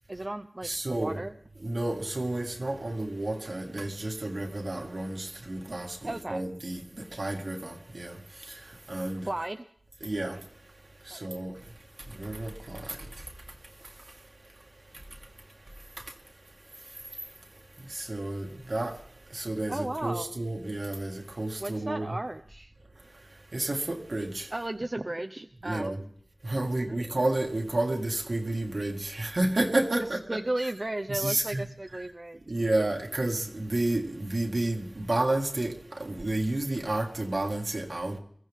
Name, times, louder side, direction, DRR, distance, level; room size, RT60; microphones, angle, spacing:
voice 1, 0.1-0.7 1.0-1.3 6.0-6.4 9.3-9.6 11.1-11.2 19.7-20.3 21.6-22.7 24.5-26.1 27.0-27.1 30.3-32.4, right 1 dB, 45° right, 0.7 m, -34 dB
voice 2, 0.6-1.2 1.6-8.1 8.9-9.3 10.0-10.4 11.1-11.5 12.2-13.0 17.9-18.9 19.3-22.2 23.5-24.5 25.6-26.0 26.4-30.4 31.1-31.7 32.5-35.7 36.0-38.2, right 2 dB, 75° right, 2.1 m, -30 dB
22.0 x 15.0 x 3.7 m
wide cardioid pair, 50°, 0 cm